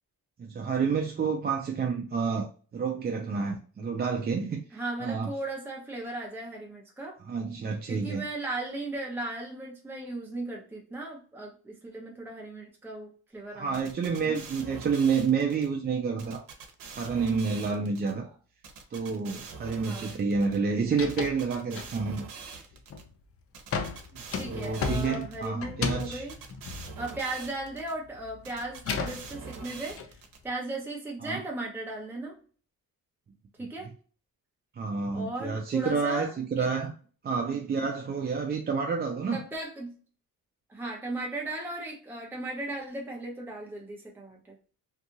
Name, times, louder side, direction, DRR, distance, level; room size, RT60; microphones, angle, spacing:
voice 1, 0.4-5.3 7.2-8.2 13.5-16.4 17.0-18.3 18.9-22.2 24.1-26.3 31.2-31.4 34.8-36.9 37.2-39.4, right 5 dB, 30° right, 0.4 m, -29 dB
voice 2, 4.7-7.2 7.9-14.4 19.8-20.1 24.3-26.4 27.0-30.0 30.4-32.4 33.6-33.9 35.1-36.7 39.3-40.0 40.7-44.6, right 2 dB, 5° right, 0.7 m, -37 dB
sound 1, 13.7-15.7 16.2-18.1 18.6-20.6 21.1-23.0 23.5-25.5 26.0-27.9 28.4-30.4, right 5 dB, 75° right, 0.8 m, -44 dB
sound 2, 20.3-20.6 20.9-21.4 21.8-22.3 22.7-23.1 23.7-27.7 28.1-30.1, left 5 dB, 40° left, 0.5 m, -35 dB
2.7 x 2.4 x 2.7 m
cardioid pair, 95°, 34 cm